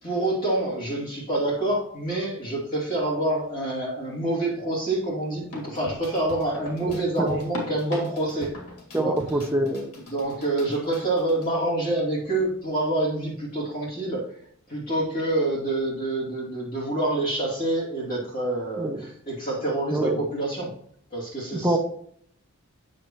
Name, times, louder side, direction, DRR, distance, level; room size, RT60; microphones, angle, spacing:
voice 1, 0.0-8.5 8.9-9.2 10.1-14.2 14.7-20.7 21.1-21.8, right 2 dB, 40° left, -6 dB, 2.7 m, -27 dB
sound 1, 5.5-11.5 11.8-11.9 12.8-12.9, left 2 dB, 90° left, 2.1 m, -40 dB
voice 2, 6.8-7.4 8.9-9.9 18.8-19.0 19.9-20.2 21.5-21.8, right 1 dB, 10° right, 2 dB, 0.6 m, -26 dB
8.7 x 6.5 x 3.0 m, 0.64 s
head